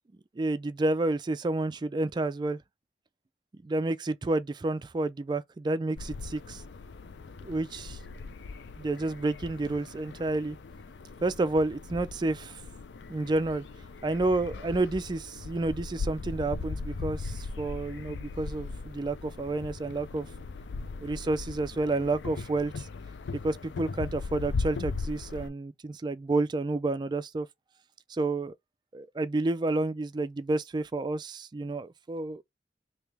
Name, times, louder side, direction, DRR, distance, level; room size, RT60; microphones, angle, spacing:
voice 1, 0.4-2.6 3.6-6.6 7.4-8.0 8.8-10.6 11.2-12.6 13.1-13.6 14.0-20.3 21.0-22.9 23.4-27.5 28.1-28.5 28.9-32.4, right 2 dB, 25° right, 0.3 m, -30 dB
sound 1, 6.0-25.5, left 4 dB, 80° left, 0.5 m, -39 dB
3.2 x 2.8 x 3.4 m
head